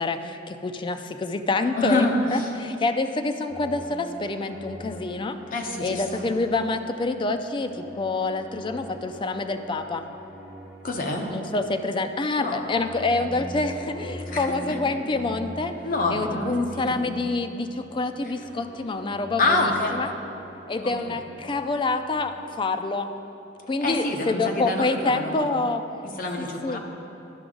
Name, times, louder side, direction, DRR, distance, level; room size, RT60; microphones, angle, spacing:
voice 1, 0.0-2.1 2.3-5.4 5.8-10.0 11.3-15.7 16.1-20.1 20.7-23.1 23.7-25.8 26.4-26.8, left 3 dB, 25° left, 8 dB, 0.4 m, -27 dB
voice 2, 1.8-2.5 5.5-6.2 10.8-11.3 12.4-12.6 14.3-14.5 15.8-16.7 19.4-20.0 20.8-20.9 23.8-25.4 26.2-26.8, left 2 dB, 50° left, 1 dB, 0.9 m, -26 dB
sound 1, 3.5-7.0 7.4-22.4, equal, 15° right, 1.7 m, -43 dB
11.5 x 6.0 x 3.8 m, 2.9 s
head